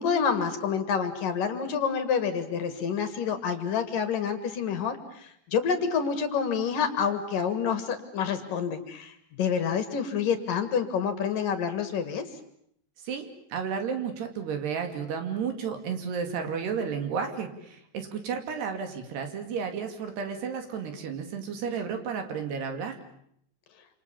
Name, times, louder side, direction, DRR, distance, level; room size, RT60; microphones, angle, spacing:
voice 1, 0.0-9.1 9.4-12.3, left 6 dB, 60° left, 9 dB, 2.7 m, -28 dB
voice 2, 13.1-23.0, right 6 dB, 60° right, 6 dB, 4.2 m, -32 dB
27.5 x 27.5 x 7.1 m, 0.70 s
omnidirectional pair, 5.6 m